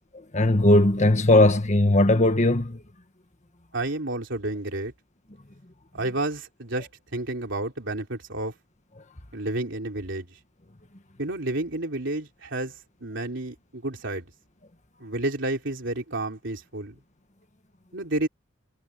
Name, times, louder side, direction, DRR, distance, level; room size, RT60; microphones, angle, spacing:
voice 1, 0.3-2.8, left 1 dB, 35° left, 1.6 m, -18 dB
voice 2, 3.7-4.9 5.9-8.5 9.3-10.3 11.2-12.7 13.0-14.3 15.0-16.9 17.9-18.3, right 2 dB, 65° right, 3.7 m, -30 dB
head